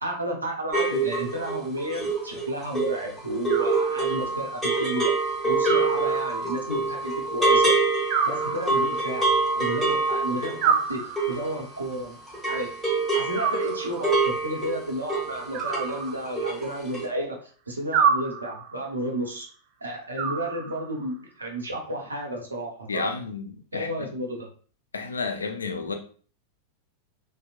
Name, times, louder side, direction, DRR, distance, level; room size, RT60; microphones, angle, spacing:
voice 1, 0.0-5.1 5.4-7.7 8.2-12.2 12.4-12.7 13.1-17.4 17.7-19.5 19.8-23.1 23.7-24.5, right 1 dB, 80° right, 1 dB, 0.7 m, -32 dB
sound 1, 0.7-12.0 12.3-16.0 16.2-16.7 16.9-17.0, right 3 dB, ahead, 1.3 m, -26 dB
Animal, 3.5-4.4 5.6-6.6 8.1-9.2 10.6-11.6 13.3-14.3 15.5-16.6 17.9-18.8 20.2-21.1, right 6 dB, 45° right, 0.4 m, -28 dB
voice 2, 22.9-24.1 24.9-25.9, left 4 dB, 75° left, 6 dB, 0.4 m, -31 dB
2.8 x 2.0 x 2.4 m, 0.42 s
figure-of-eight pair, 90°, 0 cm